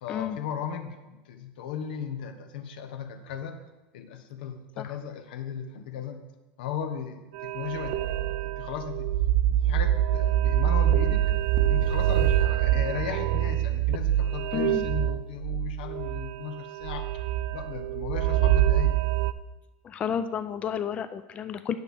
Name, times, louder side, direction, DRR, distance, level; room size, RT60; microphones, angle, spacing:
voice 1, 0.0-3.6 3.9-6.2 6.6-9.1 9.5-11.3 11.7-17.3 17.5-19.0, left 8 dB, 90° left, 8 dB, 0.8 m, -36 dB
sound 1, 7.3-19.3, right 12 dB, 70° right, 0.4 m, -25 dB
voice 2, 14.5-14.9 19.8-21.8, left 8 dB, 25° left, 10 dB, 0.3 m, -31 dB
9.2 x 6.2 x 3.5 m, 1.1 s
supercardioid pair, 140°, 5 cm